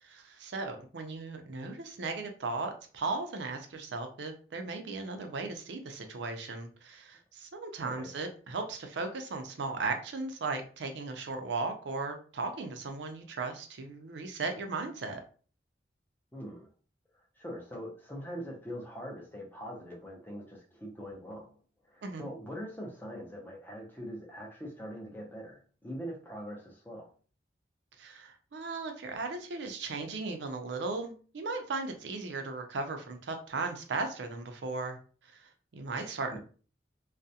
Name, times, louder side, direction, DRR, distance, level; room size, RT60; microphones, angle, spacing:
voice 1, 0.0-15.2 22.0-22.3 28.0-35.0 35.2-36.4, right 3 dB, 80° right, 5 dB, 0.5 m, -37 dB
voice 2, 16.3-16.7 17.4-21.6 21.8-27.1 36.3-36.4, equal, 10° left, -1 dB, 0.6 m, -42 dB
2.3 x 2.1 x 2.7 m, 0.40 s
head